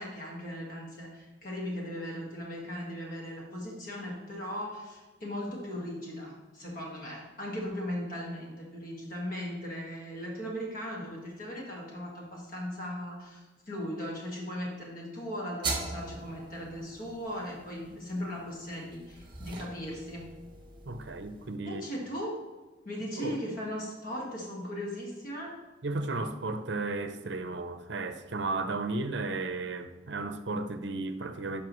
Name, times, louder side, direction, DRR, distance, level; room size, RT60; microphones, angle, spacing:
voice 1, 0.0-20.2 21.6-22.4 22.9-25.5, equal, 45° left, -3 dB, 1.8 m, -38 dB
sound 1, 15.6-21.5, right 3 dB, 25° right, 1.0 m, -41 dB
voice 2, 20.9-21.9 23.2-23.4 25.8-31.6, right 3 dB, 65° right, 9 dB, 0.7 m, -34 dB
11.0 x 5.7 x 3.1 m, 1.2 s
head